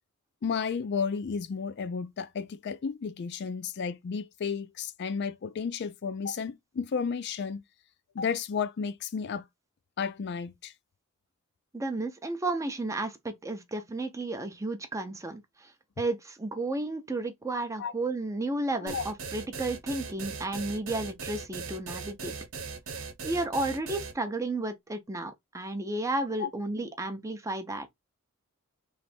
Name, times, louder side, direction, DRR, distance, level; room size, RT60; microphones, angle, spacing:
voice 1, 0.4-7.6 8.2-9.5 10.0-10.7 17.8-17.9 18.8-19.1 26.4-26.5, left 6 dB, 50° left, 0.4 m, -32 dB
voice 2, 11.7-15.7 16.0-22.3 22.9-27.9, right 2 dB, 15° right, 0.5 m, -33 dB
sound 1, 18.9-24.1, right 5 dB, 65° right, 0.9 m, -38 dB
3.2 x 2.6 x 4.2 m
head